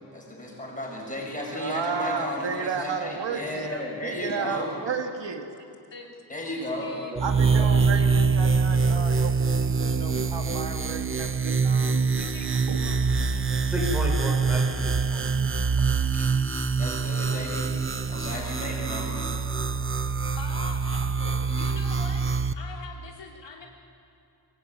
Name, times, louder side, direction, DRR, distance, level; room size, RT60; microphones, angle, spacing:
voice 1, 0.1-4.7 6.3-6.9 16.8-17.7 18.1-19.3, left 1 dB, 20° left, -2 dB, 6.9 m, -34 dB
voice 2, 1.6-5.5 7.2-12.3 12.7-12.8, right 5 dB, 85° right, 5 dB, 1.8 m, -33 dB
voice 3, 5.9-6.2 6.6-8.2 12.2-13.5 17.2-17.9 18.2-18.6 20.3-23.7, left 4 dB, 90° left, 0 dB, 3.1 m, -44 dB
sound 1, 7.2-22.5, right 5 dB, 30° right, 0.7 m, -25 dB
voice 4, 13.6-15.6 16.1-16.2, left 1 dB, 5° right, -1 dB, 5.3 m, -33 dB
23.5 x 18.0 x 9.3 m, 2.6 s
wide cardioid pair, 150°, 42 cm